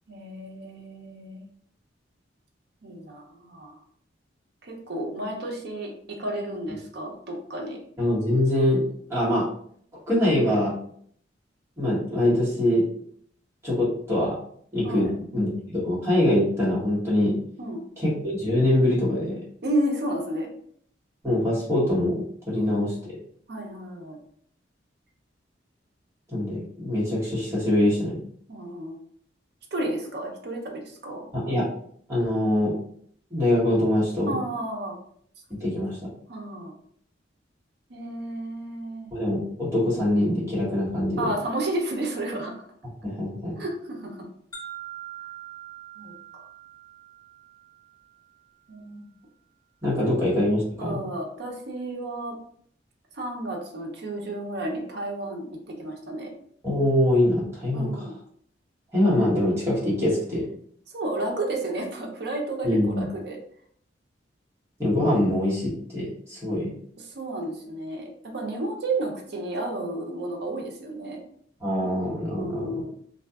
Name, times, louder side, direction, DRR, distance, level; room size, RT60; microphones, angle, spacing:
voice 1, 0.1-1.4 2.8-3.8 4.6-7.8 14.8-15.1 17.6-17.8 19.6-20.5 22.5-22.8 23.5-24.2 28.5-29.0 29.7-31.2 34.3-35.0 36.3-36.7 37.9-39.1 41.2-42.5 43.6-44.2 46.0-46.1 48.7-49.1 49.8-50.2 50.8-52.3 53.1-56.3 57.7-58.2 60.9-63.4 67.1-71.2 72.3-72.9, right 1 dB, 60° right, 0 dB, 0.6 m, -32 dB
voice 2, 8.0-8.8 9.1-9.5 10.1-10.7 11.8-13.0 13.6-14.3 14.7-17.4 18.0-19.4 21.2-22.9 26.3-28.2 31.3-31.7 32.1-32.7 33.3-34.4 35.6-36.1 39.1-41.3 43.0-43.6 49.8-51.0 56.6-58.1 58.9-60.4 62.6-63.1 64.8-66.7 71.6-72.8, left 1 dB, 15° right, -8 dB, 1.2 m, -24 dB
sound 1, 44.5-48.5, right 9 dB, 20° left, 0.4 m, -43 dB
2.6 x 2.4 x 2.3 m, 0.63 s
head